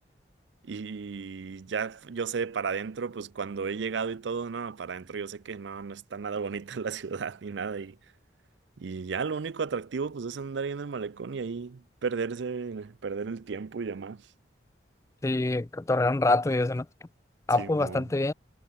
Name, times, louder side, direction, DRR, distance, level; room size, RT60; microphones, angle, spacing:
voice 1, 0.7-8.0 8.8-14.2 17.6-18.1, right 5 dB, 80° right, 0.5 m, -34 dB
voice 2, 15.2-16.8 17.5-18.3, left 2 dB, 15° left, 0.3 m, -25 dB
head